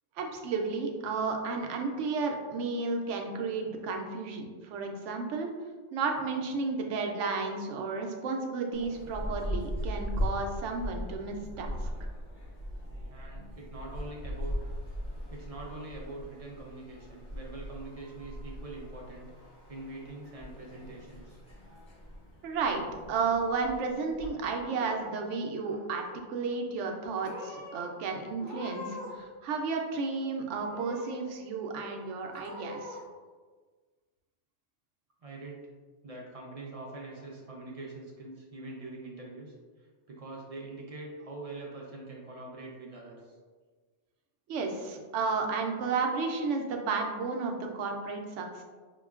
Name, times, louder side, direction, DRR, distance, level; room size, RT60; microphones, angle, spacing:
voice 1, 0.2-5.5 5.9-11.8 22.4-22.8 23.1-33.0 44.5-48.6, right 4 dB, 75° right, 3 dB, 0.9 m, -32 dB
sound 1, 8.7-24.3, equal, 45° left, 1.2 m, -39 dB
voice 2, 13.1-14.7 15.3-19.3 19.7-21.4 35.2-35.6 36.0-39.5 40.1-43.2, right 2 dB, 40° right, -3 dB, 0.5 m, -44 dB
Purr / Meow, 24.4-25.3 25.6-26.1 26.8-27.0 27.2-27.8 28.3-29.2 29.5-30.2 30.6-31.2 31.7-31.8 32.2-33.0, left 1 dB, 60° left, 1.5 m, -44 dB
5.4 x 2.2 x 2.3 m, 1.4 s
omnidirectional pair, 1.3 m